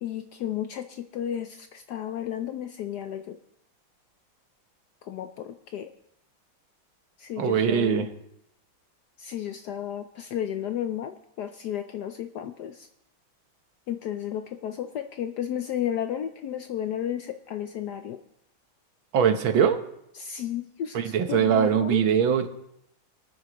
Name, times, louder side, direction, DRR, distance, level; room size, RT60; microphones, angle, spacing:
voice 1, 0.0-3.4 5.0-5.9 7.2-8.1 9.2-12.9 13.9-18.2 20.1-22.0, left 10 dB, 70° left, 8 dB, 1.0 m, -33 dB
voice 2, 7.4-8.1 19.1-19.8 20.9-22.5, right 8 dB, 75° right, 8 dB, 1.7 m, -22 dB
26.5 x 9.4 x 3.0 m, 0.77 s
omnidirectional pair, 2.2 m